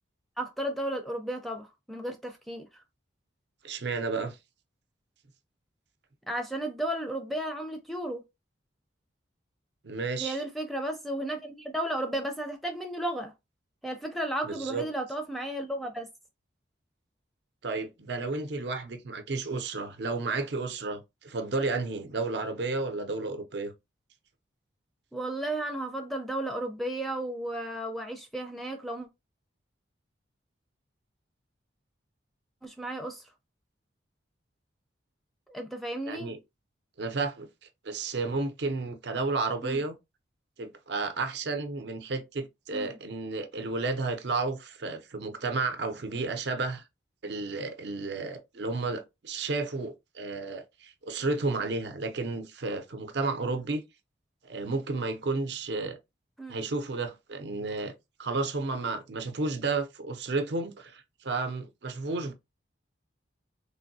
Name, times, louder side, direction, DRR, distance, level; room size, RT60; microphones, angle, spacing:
voice 1, 0.4-2.7 6.3-8.2 10.2-13.3 13.8-16.1 25.1-29.1 32.6-33.2 35.5-36.3 39.6-39.8 42.7-43.0 56.4-56.6, right 1 dB, ahead, 0.4 m, -34 dB
voice 2, 3.6-4.4 9.8-10.4 14.4-14.8 17.6-23.7 36.1-36.4 37.0-37.5 37.8-39.9 40.6-46.8 47.2-53.8 54.4-56.0 56.5-57.9 58.2-62.3, right 3 dB, 60° right, 0.6 m, -32 dB
3.3 x 2.5 x 2.7 m
head